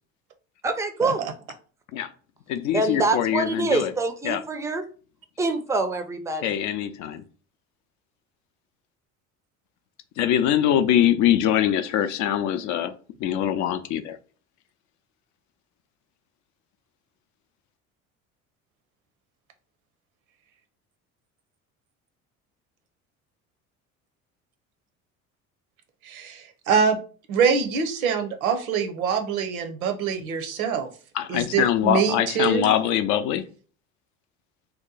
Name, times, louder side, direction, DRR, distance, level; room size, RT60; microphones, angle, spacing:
voice 1, 0.6-1.2 2.7-4.8 5.4-6.6, right 3 dB, 5° right, 0.5 m, -25 dB
voice 2, 2.5-3.9 4.2-4.4 6.4-7.2 10.2-12.9 13.2-14.2 31.1-33.4, left 10 dB, 45° left, 0.5 m, -23 dB
voice 3, 26.0-27.0 27.3-30.9 31.3-32.7, right 6 dB, 75° right, 0.7 m, -24 dB
2.9 x 2.2 x 3.8 m
figure-of-eight pair, 60°, 42 cm